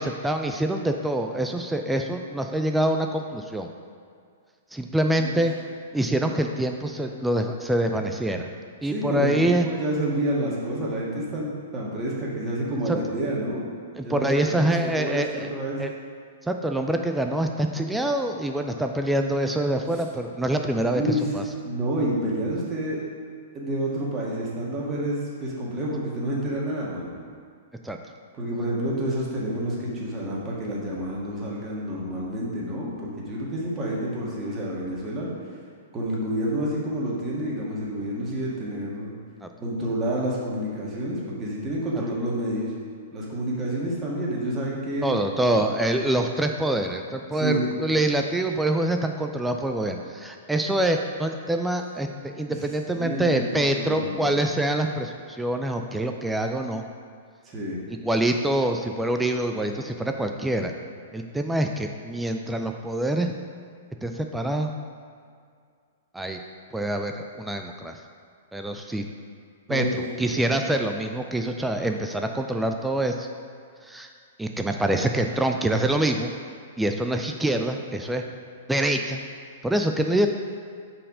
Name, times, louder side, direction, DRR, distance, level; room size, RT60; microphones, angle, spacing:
voice 1, 0.0-3.7 4.7-5.5 5.9-8.5 8.8-9.7 12.9-13.0 13.9-15.5 15.8-15.9 16.4-21.0 21.3-21.4 27.8-28.0 39.4-39.5 45.0-56.8 57.9-60.7 61.1-63.3 64.0-64.7 66.1-66.4 66.7-68.0 68.5-69.1 69.7-73.3 73.8-74.1 74.4-76.3 76.8-78.3 78.7-79.2 79.6-80.3, right 1 dB, 5° right, 4 dB, 0.4 m, -25 dB
voice 2, 8.9-13.6 14.0-15.8 21.0-21.2 21.6-23.0 23.5-27.1 28.3-35.3 35.9-39.1 39.6-42.7 43.1-45.1 45.4-45.7 47.3-47.7 52.9-54.3 57.5-57.8 69.7-70.0, right 1 dB, 25° right, -5 dB, 1.7 m, -29 dB
5.3 x 4.5 x 4.9 m, 2.1 s
figure-of-eight pair, 110°, 0 cm